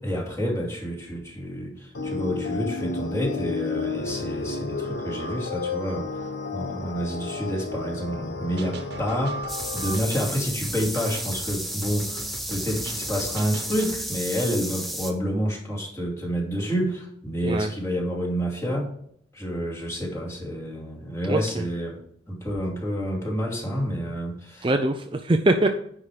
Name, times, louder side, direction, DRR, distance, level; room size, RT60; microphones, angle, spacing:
voice 1, 0.0-6.2 6.5-18.9 19.3-24.7, equal, 15° left, -3 dB, 2.5 m, -29 dB
sound 1, 1.9-10.0, left 3 dB, 85° left, 1.1 m, -32 dB
sound 2, 8.6-14.1, right 2 dB, 65° right, 1.2 m, -41 dB
sound 3, 9.5-15.1, equal, ahead, 0.8 m, -33 dB
voice 2, 21.2-21.6 24.6-25.7, right 2 dB, 25° right, 6 dB, 0.5 m, -23 dB
10.0 x 4.9 x 4.9 m, 0.68 s
head